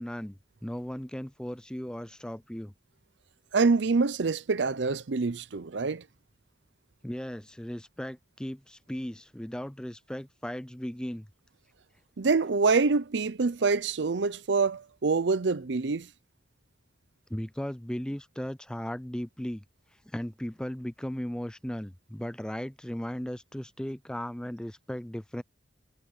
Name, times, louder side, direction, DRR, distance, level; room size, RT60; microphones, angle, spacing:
voice 1, 0.0-2.7 7.0-11.3 17.3-19.6 20.1-25.4, equal, 5° left, 0.4 m, -36 dB
voice 2, 3.5-6.0 12.2-16.1, right 4 dB, 75° right, 0.6 m, -26 dB
head